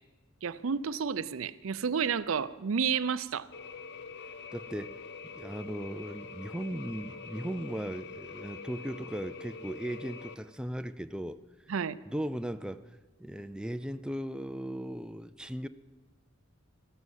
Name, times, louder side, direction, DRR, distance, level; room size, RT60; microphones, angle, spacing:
voice 1, 0.4-3.5 11.7-12.0, right 6 dB, 75° right, 16 dB, 0.5 m, -31 dB
sound 1, 3.5-10.3, left 5 dB, 60° left, 0.8 m, -45 dB
voice 2, 4.2-5.0 5.3-11.4 12.1-15.7, right 1 dB, 5° right, 10 dB, 0.4 m, -37 dB
14.0 x 12.5 x 7.4 m, 1.2 s
head